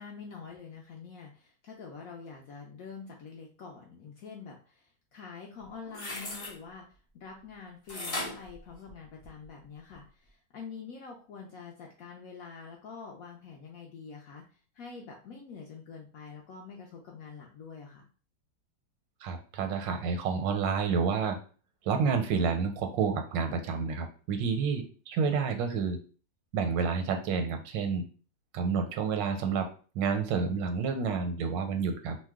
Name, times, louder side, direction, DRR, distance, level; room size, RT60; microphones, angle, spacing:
voice 1, 0.0-14.4 14.7-18.1, left 5 dB, 75° left, 0 dB, 0.8 m, -46 dB
sound 1, 5.6-6.5 7.9-9.4 9.9-10.0, left 2 dB, 35° left, 0.5 m, -38 dB
voice 2, 19.2-21.4 21.8-26.0 26.5-28.0 28.5-32.2, right 5 dB, 85° right, 5 dB, 1.3 m, -29 dB
2.9 x 2.1 x 3.4 m, 0.39 s
omnidirectional pair, 1.9 m